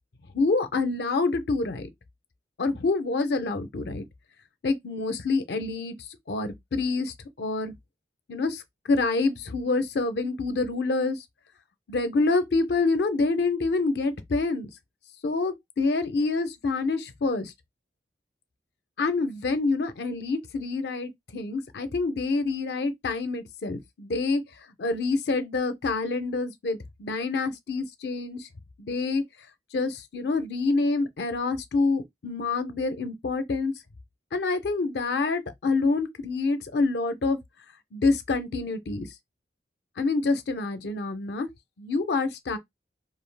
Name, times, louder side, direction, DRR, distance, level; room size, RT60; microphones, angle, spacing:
voice 1, 0.3-1.9 2.6-4.1 4.6-6.0 6.3-7.7 8.3-8.6 8.9-11.2 11.9-14.7 15.2-17.5 19.0-24.4 24.8-28.5 28.8-29.2 29.7-33.7 34.3-37.4 37.9-39.1 40.0-41.5 41.8-42.6, left 3 dB, 65° left, 0.5 m, -27 dB
2.4 x 2.3 x 3.2 m
head